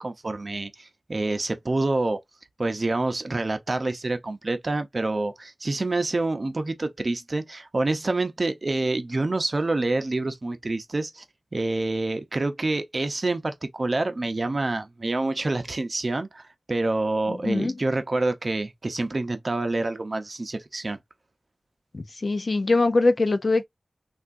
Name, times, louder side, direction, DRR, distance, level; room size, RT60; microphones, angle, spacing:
voice 1, 0.0-2.2 2.6-11.2 11.5-16.4 16.7-21.0, right 2 dB, 45° right, 0.6 m, -27 dB
voice 2, 17.3-17.7 21.9-23.7, left 3 dB, 50° left, 0.4 m, -23 dB
3.4 x 2.4 x 2.5 m
wide cardioid pair, 90°, 0 cm